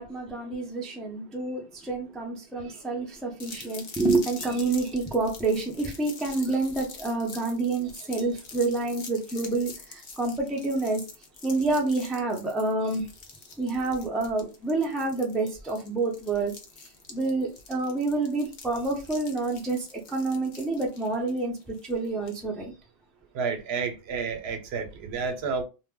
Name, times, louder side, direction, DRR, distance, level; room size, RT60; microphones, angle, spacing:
voice 1, 0.0-11.0 11.4-13.0 13.6-16.5 17.1-22.7, right 3 dB, ahead, 0.3 m, -28 dB
sound 1, 3.4-22.4, left 4 dB, 55° left, 0.7 m, -45 dB
voice 2, 23.3-25.6, right 5 dB, 85° right, 0.8 m, -30 dB
2.2 x 2.1 x 3.5 m
omnidirectional pair, 1.0 m